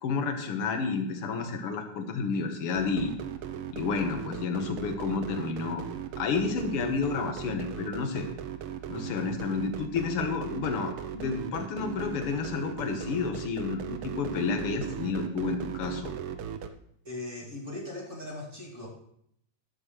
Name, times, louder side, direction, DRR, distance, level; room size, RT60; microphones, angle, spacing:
voice 1, 0.0-3.1 3.7-5.8 6.2-8.3 8.9-16.1, left 5 dB, 55° left, 5 dB, 1.9 m, -30 dB
sound 1, 2.7-16.7, right 9 dB, 85° right, 1.2 m, -37 dB
voice 2, 17.0-18.9, left 2 dB, 25° right, -5 dB, 2.8 m, -39 dB
13.0 x 11.5 x 3.2 m, 0.71 s
omnidirectional pair, 3.4 m